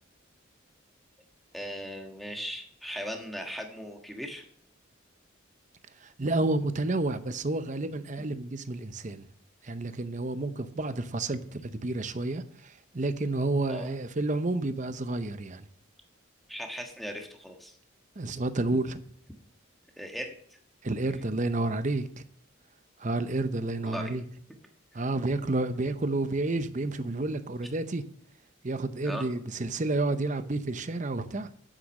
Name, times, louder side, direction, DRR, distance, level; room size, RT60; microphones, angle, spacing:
voice 1, 1.5-4.4 13.7-13.9 16.5-17.8 20.0-20.3 23.8-24.1 29.0-29.2, equal, ahead, 1.4 m, -38 dB
voice 2, 6.0-9.3 9.6-15.6 18.2-19.0 20.8-22.2 23.0-24.2 24.9-28.0 28.6-31.5, right 2 dB, 40° right, 0.7 m, -30 dB
9.2 x 7.9 x 6.4 m
head